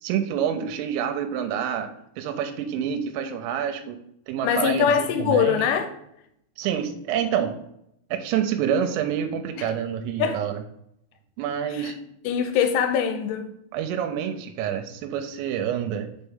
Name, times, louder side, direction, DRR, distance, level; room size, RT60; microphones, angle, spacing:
voice 1, 0.0-1.9 2.2-4.0 4.3-5.7 6.6-7.6 8.1-10.6 11.4-12.0 13.7-16.1, right 8 dB, 90° right, 3.1 m, -27 dB
voice 2, 4.4-5.9 9.5-9.7 10.2-10.4 11.7-11.9 12.2-13.5, left 8 dB, 80° left, 3.0 m, -23 dB
6.7 x 4.4 x 3.5 m
omnidirectional pair, 5.7 m